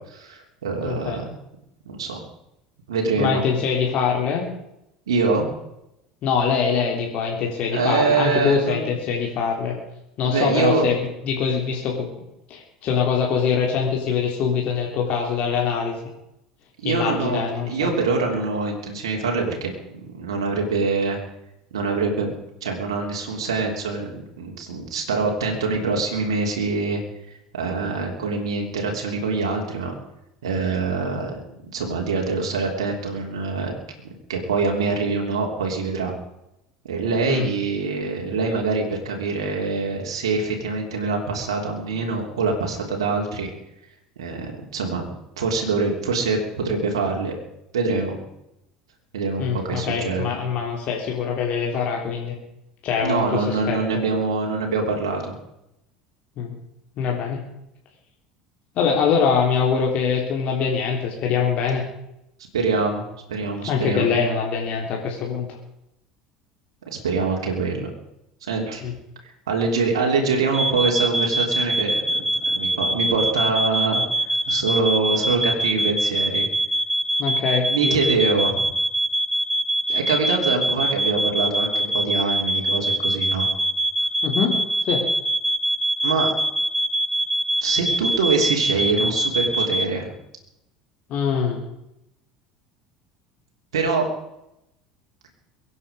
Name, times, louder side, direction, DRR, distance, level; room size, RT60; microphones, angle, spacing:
voice 1, 0.1-1.2 1.8-2.2 2.9-3.4 5.1-5.5 7.7-8.8 10.2-10.9 16.8-21.2 21.7-22.3 22.6-27.0 27.3-29.9 30.4-31.4 31.7-33.7 34.3-36.1 36.9-43.5 44.2-45.0 45.4-47.3 47.7-48.1 49.1-50.3 53.0-55.4 62.5-64.2 66.9-67.9 68.4-68.8 69.5-76.5 77.7-78.6 79.9-83.5 86.0-86.3 87.6-90.1 93.7-94.1, right 4 dB, 75° right, 0 dB, 3.4 m, -24 dB
voice 2, 0.8-1.2 3.2-4.4 6.2-9.7 10.2-12.1 12.5-15.9 16.8-17.9 37.3-37.4 49.4-52.3 52.8-53.8 56.4-56.5 57.0-57.4 58.7-61.8 63.7-65.5 68.8-68.9 77.2-78.1 84.2-84.5 84.9-85.0 91.1-91.6, left 6 dB, 50° left, 0 dB, 3.4 m, -23 dB
sound 1, 70.5-89.9, right 1 dB, 5° right, 1.5 m, -24 dB
23.0 x 9.8 x 5.1 m, 0.83 s
hypercardioid pair, 70°, 3 cm